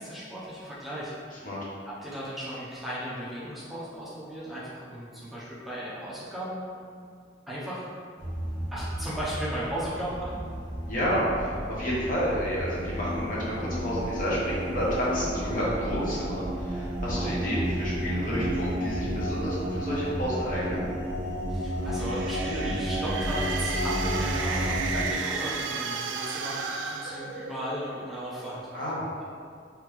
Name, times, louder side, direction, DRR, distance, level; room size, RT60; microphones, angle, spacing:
voice 1, 0.0-1.1 2.0-6.8 7.5-7.8 8.7-10.4 17.2-17.3 21.5-28.9, equal, ahead, -10 dB, 0.6 m, -36 dB
sound 1, 8.2-25.1, equal, 25° right, 1.1 m, -32 dB
voice 2, 10.8-20.9 28.7-29.2, equal, 50° left, -7 dB, 1.1 m, -30 dB
sound 2, 21.8-27.9, right 5 dB, 85° right, 0.3 m, -33 dB
3.3 x 3.3 x 3.3 m, 2.2 s
head